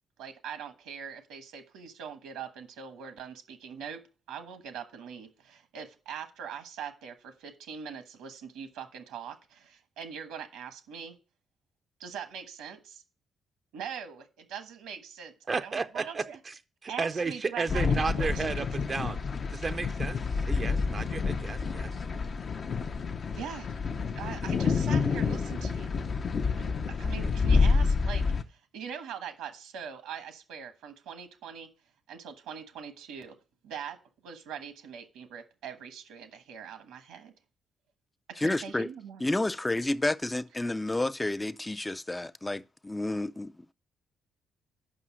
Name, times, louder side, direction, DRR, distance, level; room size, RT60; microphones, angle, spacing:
voice 1, 0.2-4.0 4.3-11.2 12.0-13.0 13.7-16.4 16.9-18.7 23.4-23.7 24.1-25.9 26.6-31.7 32.1-33.4 33.6-34.0 34.2-37.3 38.4-39.2, right 7 dB, 85° right, 1.2 m, -42 dB
voice 2, 15.5-16.5 16.8-19.2 19.5-22.0, right 4 dB, 40° right, 0.5 m, -33 dB
sound 1, 17.7-28.4, left 4 dB, 55° left, 0.7 m, -28 dB
voice 3, 38.4-38.9 39.2-43.7, left 2 dB, 20° left, 0.4 m, -30 dB
6.2 x 5.5 x 6.1 m
supercardioid pair, 55°, 0 cm